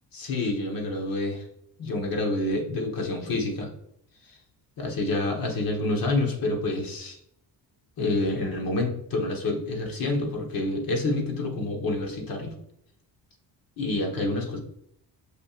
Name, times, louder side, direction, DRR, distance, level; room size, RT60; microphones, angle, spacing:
voice 1, 0.1-1.4 1.8-3.7 4.2-4.4 4.8-7.2 8.0-12.5 13.8-14.6, left 2 dB, 50° left, 2 dB, 1.3 m, -28 dB
6.4 x 6.0 x 2.5 m, 0.73 s
cardioid pair, 180°, 43 cm